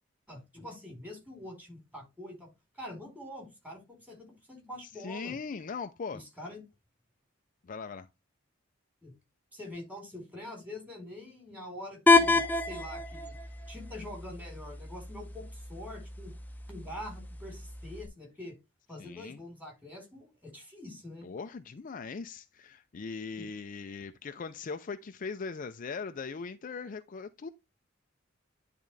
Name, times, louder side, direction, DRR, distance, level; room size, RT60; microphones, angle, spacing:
voice 1, 0.3-2.5 2.7-5.4 6.1-6.6 9.0-9.1 9.5-13.4 13.7-16.3 16.7-18.6 18.9-21.3, left 1 dB, 10° right, 4.1 m, -45 dB
voice 2, 4.8-6.2 7.6-8.1 19.0-19.4 21.2-27.5, left 5 dB, 45° left, 0.4 m, -40 dB
sound 1, 12.1-18.1, left 3 dB, 10° left, 0.8 m, -29 dB
10.5 x 3.7 x 3.2 m
head